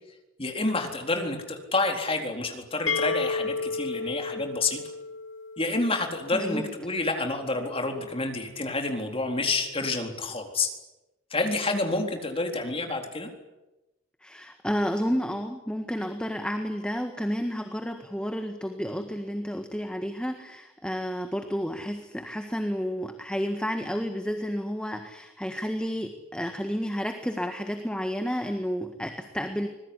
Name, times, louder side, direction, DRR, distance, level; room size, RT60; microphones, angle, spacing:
voice 1, 0.4-4.8 5.6-10.7 11.3-13.3, left 2 dB, 25° left, 4 dB, 4.0 m, -28 dB
sound 1, 2.9-6.6, left 4 dB, 60° left, 1.1 m, -32 dB
voice 2, 6.3-6.7 14.2-29.7, equal, 5° left, 6 dB, 1.7 m, -31 dB
25.5 x 21.0 x 9.9 m, 1.0 s
head